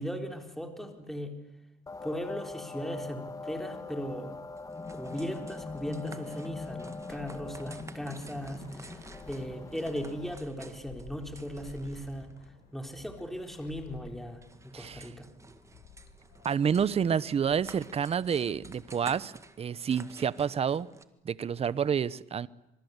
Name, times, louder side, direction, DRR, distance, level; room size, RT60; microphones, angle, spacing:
voice 1, 0.0-1.4 2.0-4.3 4.9-15.3, equal, ahead, 4 dB, 4.0 m, -38 dB
sound 1, 1.9-10.3, left 3 dB, 20° left, 1.8 m, -42 dB
sound 2, 4.6-21.0, right 3 dB, 15° right, 1.9 m, -52 dB
sound 3, 4.8-19.3, left 6 dB, 80° left, 5.7 m, -54 dB
voice 2, 14.7-15.0 16.4-20.9 21.2-22.5, right 7 dB, 35° right, 18 dB, 1.0 m, -29 dB
27.0 x 25.0 x 8.2 m, 0.91 s
cardioid pair, 110°, 17 cm